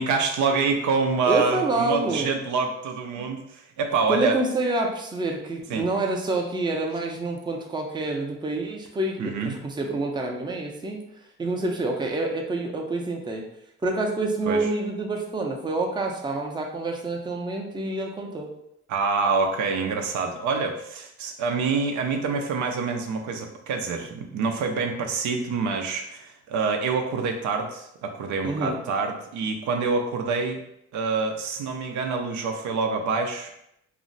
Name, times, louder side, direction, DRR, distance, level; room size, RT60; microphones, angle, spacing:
voice 1, 0.0-4.4 5.7-5.8 9.2-9.6 14.5-14.7 18.9-30.6 30.9-33.5, right 4 dB, 75° right, 4 dB, 0.5 m, -26 dB
voice 2, 1.3-2.3 3.2-3.3 4.1-11.0 11.4-13.4 13.8-18.5 28.4-28.8, right 2 dB, 15° right, 1 dB, 0.5 m, -27 dB
2.5 x 2.0 x 3.8 m, 0.79 s
cardioid pair, 90°, 30 cm